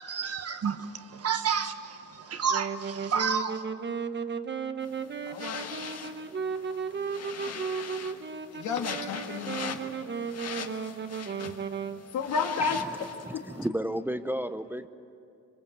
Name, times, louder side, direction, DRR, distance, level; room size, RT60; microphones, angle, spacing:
voice 1, 0.0-3.6, right 6 dB, 55° right, 1.4 m, -30 dB
Wind instrument woodwind instrument, 2.5-12.0, right 6 dB, 35° right, 1.2 m, -35 dB
sound 1, 4.8-13.7, left 6 dB, 55° left, 1.6 m, -42 dB
voice 2, 5.3-5.7 6.9-7.0 8.5-9.9 12.1-12.8 13.3-13.4, left 5 dB, 75° left, 2.0 m, -31 dB
voice 3, 12.6-13.0 13.2-14.9, right 1 dB, 5° right, 0.7 m, -33 dB
25.5 x 23.5 x 7.9 m
cardioid pair, 90°, 30 cm